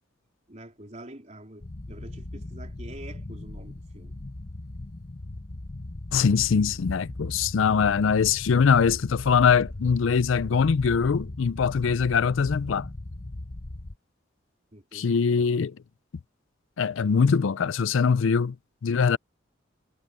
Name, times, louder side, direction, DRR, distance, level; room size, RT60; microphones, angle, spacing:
voice 1, 0.5-4.3 14.7-15.2, right 1 dB, 35° right, 3.9 m, -46 dB
sound 1, 1.6-14.0, left 2 dB, 40° left, 0.9 m, -38 dB
voice 2, 6.1-12.9 14.9-15.8 16.8-18.6 18.8-19.2, left 6 dB, 75° left, 0.4 m, -22 dB
head